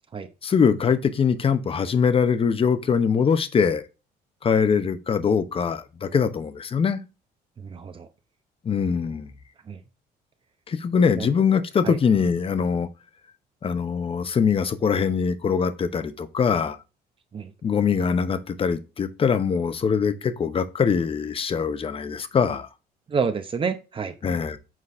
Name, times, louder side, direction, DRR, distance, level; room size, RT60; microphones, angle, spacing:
voice 1, 0.4-3.8 4.4-7.0 8.6-9.3 10.7-12.9 13.6-16.8 17.6-22.7 24.2-24.6, left 6 dB, 35° left, 0.8 m, -22 dB
voice 2, 7.6-8.1 9.7-9.8 11.2-11.3 11.8-12.0 17.3-17.5 23.1-24.1, right 5 dB, 30° right, 0.8 m, -28 dB
7.5 x 4.0 x 3.2 m
cardioid pair, 110°, 17 cm